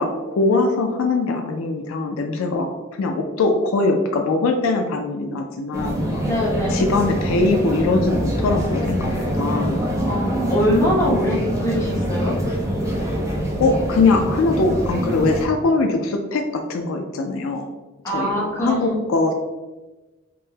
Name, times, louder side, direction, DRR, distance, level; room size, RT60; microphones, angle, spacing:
voice 1, 0.0-6.2 6.7-9.8 13.6-17.7 18.1-19.3, left 3 dB, 70° left, 4 dB, 0.3 m, -22 dB
sound 1, 5.7-15.5, equal, 15° right, 0.4 m, -24 dB
voice 2, 6.2-6.9 10.0-12.4 18.0-19.1, equal, 15° left, -6 dB, 0.8 m, -22 dB
3.7 x 2.0 x 2.7 m, 1.1 s
head